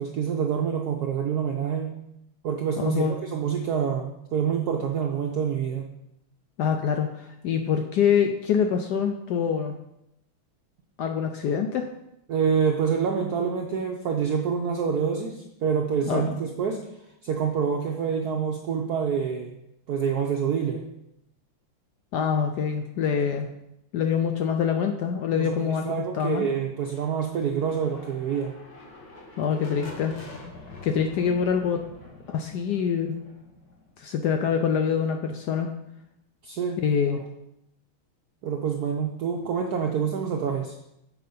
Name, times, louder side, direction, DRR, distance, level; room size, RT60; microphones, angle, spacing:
voice 1, 0.0-1.9 2.4-5.8 12.3-16.8 17.2-19.6 19.9-20.8 25.3-28.6 30.9-31.0 36.4-37.2 38.4-40.7, right 7 dB, 70° right, 2 dB, 0.9 m, -27 dB
voice 2, 2.8-3.1 6.6-9.8 11.0-11.9 16.0-16.4 22.1-23.5 23.9-26.5 29.4-30.2 30.8-31.8 32.3-33.2 34.0-35.7 36.8-37.2, left 7 dB, 90° left, 6 dB, 0.9 m, -25 dB
sound 1, 26.7-34.4, left 2 dB, 50° left, 1.7 m, -45 dB
7.6 x 4.9 x 5.4 m, 0.82 s
omnidirectional pair, 2.4 m